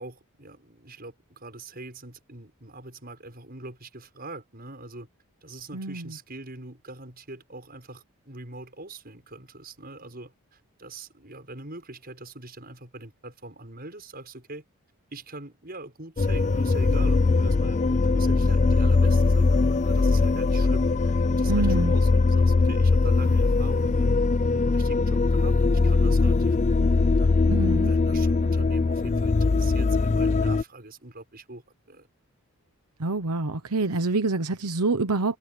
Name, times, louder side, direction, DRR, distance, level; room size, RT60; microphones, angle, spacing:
voice 1, 0.0-5.1 5.4-14.6 15.1-24.2 24.5-26.8 27.2-32.1, right 2 dB, 40° right, 7.0 m, -43 dB
voice 2, 5.7-6.1 21.5-21.9 27.5-27.9 33.0-35.4, right 3 dB, 90° right, 1.1 m, -26 dB
sound 1, 16.2-30.6, left 3 dB, 30° left, 0.4 m, -21 dB
head